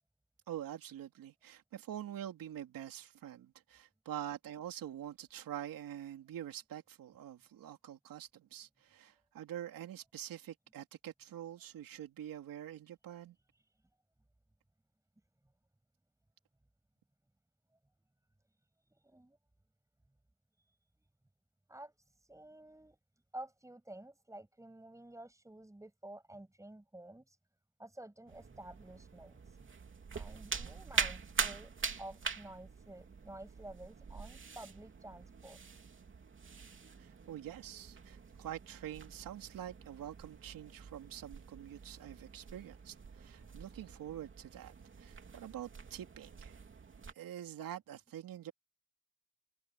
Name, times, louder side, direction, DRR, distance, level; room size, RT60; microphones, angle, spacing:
voice 1, 0.5-13.3 37.0-46.6 47.1-48.5, right 11 dB, 60° right, 3.0 m, -46 dB
voice 2, 19.0-19.4 20.7-20.8 21.7-23.0 23.3-27.4 27.8-29.7 30.1-35.6, right 1 dB, 10° right, 7.4 m, -51 dB
sound 1, 28.3-47.1, right 5 dB, 30° right, 3.2 m, -44 dB
cardioid pair, 110°, 38 cm